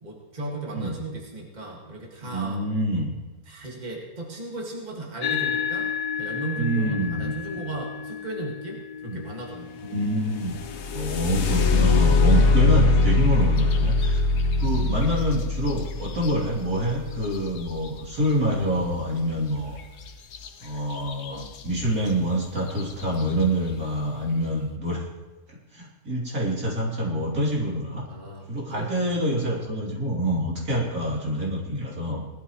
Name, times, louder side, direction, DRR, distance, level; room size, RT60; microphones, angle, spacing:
voice 1, 0.0-2.6 3.5-5.9 6.2-9.9 14.8-15.0 28.1-28.9 29.5-29.6, right 2 dB, 30° right, -2 dB, 2.1 m, -35 dB
voice 2, 2.2-3.1 6.6-7.6 9.0-9.2 9.9-10.6 10.9-14.2 14.6-19.8 20.6-25.0 25.7-28.0 28.5-32.2, equal, 70° right, -4 dB, 3.6 m, -26 dB
sound 1, 5.2-13.9, left 8 dB, 80° left, 1.4 m, -34 dB
sound 2, 10.4-18.3 20.3-20.5 20.9-21.5 22.1-22.2 22.7-23.0, left 3 dB, 55° left, 0.9 m, -22 dB
19.5 x 12.5 x 3.1 m, 1.2 s
omnidirectional pair, 1.6 m